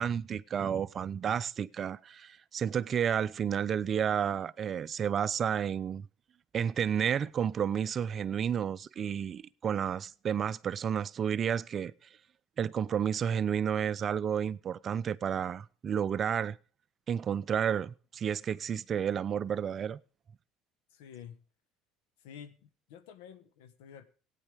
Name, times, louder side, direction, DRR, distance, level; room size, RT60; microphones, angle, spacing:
voice 1, 0.0-6.1 6.5-11.9 12.6-16.6 17.1-20.0, right 8 dB, 40° right, 0.5 m, -31 dB
voice 2, 20.9-21.4 22.2-24.0, left 8 dB, 80° left, 1.2 m, -50 dB
16.5 x 9.2 x 3.4 m
supercardioid pair, 80°, 0 cm